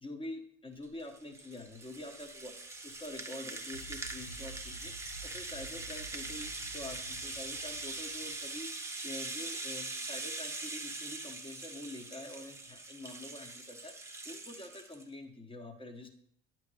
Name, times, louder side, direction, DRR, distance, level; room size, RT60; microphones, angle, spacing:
voice 1, 0.0-2.5 2.8-4.9 5.3-8.7 9.0-13.9 14.2-16.1, left 1 dB, 15° left, 4 dB, 1.2 m, -46 dB
Rattle (instrument), 0.8-15.0, right 2 dB, 10° right, 0.9 m, -42 dB
sound 1, 3.7-8.6, right 1 dB, 85° left, 0.8 m, -51 dB
8.9 x 3.0 x 6.3 m, 0.67 s
supercardioid pair, 85°, 34 cm